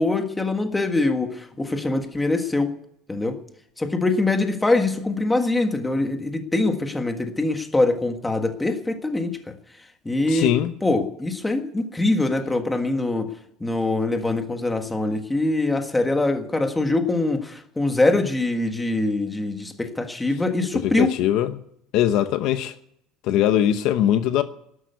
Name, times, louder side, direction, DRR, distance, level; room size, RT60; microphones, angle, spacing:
voice 1, 0.0-2.7 3.1-3.4 3.8-9.4 10.0-10.5 10.8-13.3 13.6-21.1, left 2 dB, 5° left, 1.6 m, -23 dB
voice 2, 10.3-10.7 20.8-21.5 21.9-22.7 23.3-24.4, left 11 dB, 50° left, 0.9 m, -21 dB
12.5 x 11.5 x 9.4 m
cardioid pair, 170°, 0 cm